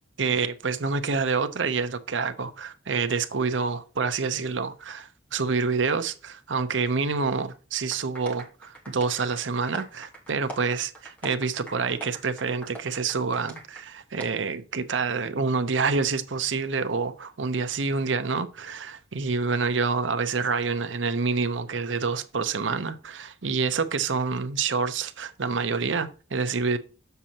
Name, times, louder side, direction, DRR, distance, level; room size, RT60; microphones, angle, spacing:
voice 1, 0.2-26.8, right 4 dB, 80° right, 0.8 m, -27 dB
sound 1, 7.9-13.8 14.2-14.3, right 2 dB, 10° left, 1.4 m, -42 dB
7.5 x 6.8 x 2.9 m
head